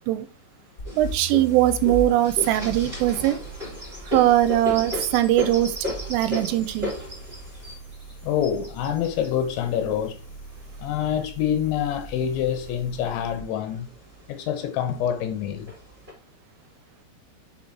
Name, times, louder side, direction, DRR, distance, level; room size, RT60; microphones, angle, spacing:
sound 1, 0.8-13.5, right 1 dB, 35° left, 1.7 m, -40 dB
sound 2, 0.8-11.1 11.8-12.7 13.1-13.2 13.5-14.2 15.0-15.1 15.7-16.1, left 2 dB, 10° right, 4.1 m, -35 dB
voice 1, 0.9-3.4 4.1-5.7 6.1-6.9, right 13 dB, 85° right, 3.2 m, -21 dB
voice 2, 8.2-10.2 10.8-13.9 14.3-15.7, left 9 dB, 75° left, 3.0 m, -26 dB
7.9 x 7.0 x 2.9 m
omnidirectional pair, 5.8 m